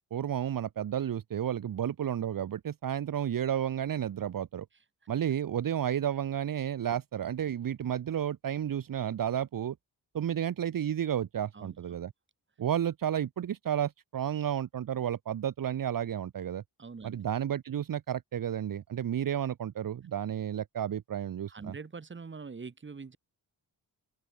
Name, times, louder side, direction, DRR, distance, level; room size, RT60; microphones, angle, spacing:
voice 1, 0.0-4.7 5.1-9.7 10.1-12.1 12.6-16.6 17.0-21.7, right 10 dB, 60° right, 1.0 m, -32 dB
voice 2, 16.8-17.2 21.5-23.2, right 4 dB, 30° right, 2.0 m, -43 dB
open air
wide cardioid pair, 140°, 39 cm